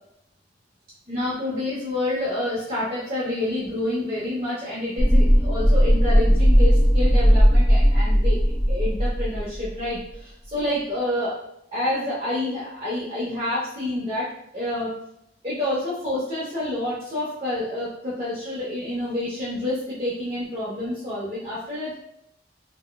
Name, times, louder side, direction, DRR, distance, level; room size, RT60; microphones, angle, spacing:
voice 1, 1.1-8.4 8.7-11.4 11.7-14.9 15.4-21.9, left 1 dB, 35° right, -9 dB, 0.8 m, -28 dB
sound 1, 5.0-9.9 10.1-10.2, equal, 10° left, 0.5 m, -17 dB
4.1 x 2.2 x 2.2 m, 0.76 s
head